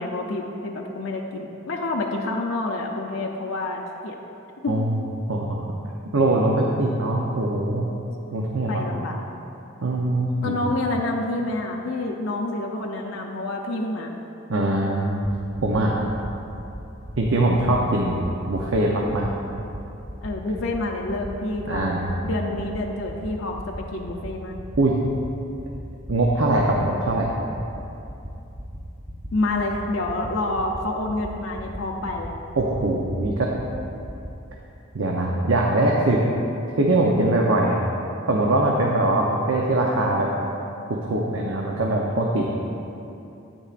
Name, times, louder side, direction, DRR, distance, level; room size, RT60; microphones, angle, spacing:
voice 1, 0.0-4.1 4.6-4.8 8.3-9.2 10.4-14.1 20.2-24.6 29.3-32.3, left 2 dB, 70° left, 0 dB, 0.6 m, -28 dB
voice 2, 4.7-5.0 5.3-5.5 6.1-7.9 8.3-8.9 9.8-10.7 14.5-15.2 15.6-15.9 17.2-19.3 21.7-22.1 24.8-25.0 26.1-27.3 32.6-33.5 34.9-36.2 36.8-37.8 38.3-40.3 41.1-42.4, right 2 dB, 70° right, -2 dB, 0.7 m, -22 dB
sound 1, 15.6-15.8 16.1-16.3 16.6-16.8 17.1-17.3 17.6-17.8 18.1-18.3 18.6-18.8 19.1-19.3 19.6-19.8 20.1-20.3 20.6-20.8 21.1-21.3 21.6-21.8 22.1-22.3 22.6-22.8 23.1-23.3 23.6-23.8 24.1-24.3 24.6-24.8 25.1-25.3 25.6-25.8 26.1-26.3 26.6-26.8 27.1-27.3 27.6-27.8 28.1-28.3 28.6-28.8 29.1-29.3 29.6-29.8 30.1-30.3 30.6-30.8 31.1-31.3 31.6-31.8 32.1-32.3 32.6-32.8 33.1-33.3 33.6-33.8 34.1-34.3, equal, 10° right, 0.6 m, -36 dB
9.9 x 8.9 x 2.5 m, 2.8 s
head